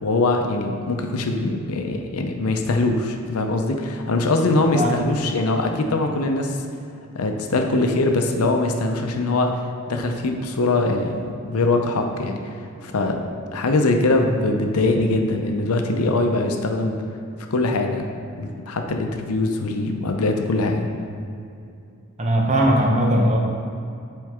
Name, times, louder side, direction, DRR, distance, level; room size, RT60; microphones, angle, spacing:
voice 1, 0.0-6.6 7.1-12.4 12.8-13.2 13.5-17.0 17.5-18.1 18.4-20.9, left 2 dB, 85° left, 4 dB, 0.6 m, -22 dB
voice 2, 22.2-23.4, equal, 30° right, 0 dB, 0.8 m, -18 dB
7.7 x 4.5 x 3.6 m, 2.6 s
head